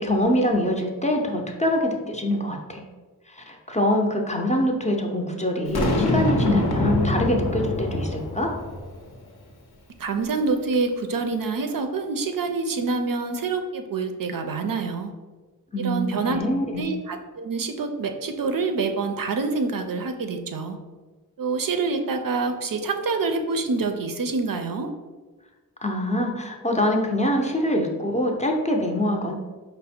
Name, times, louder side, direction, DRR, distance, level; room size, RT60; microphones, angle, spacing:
voice 1, 0.0-2.8 3.3-8.5 15.7-16.8 25.8-29.3, left 1 dB, 20° left, 1 dB, 0.5 m, -24 dB
Boom, 5.7-9.1, left 1 dB, 80° left, 0.8 m, -24 dB
voice 2, 10.0-15.1 15.8-16.4 16.8-20.8 21.4-24.9, right 4 dB, 60° right, 6 dB, 0.5 m, -26 dB
4.9 x 2.1 x 4.2 m, 1.3 s
wide cardioid pair, 100°, 38 cm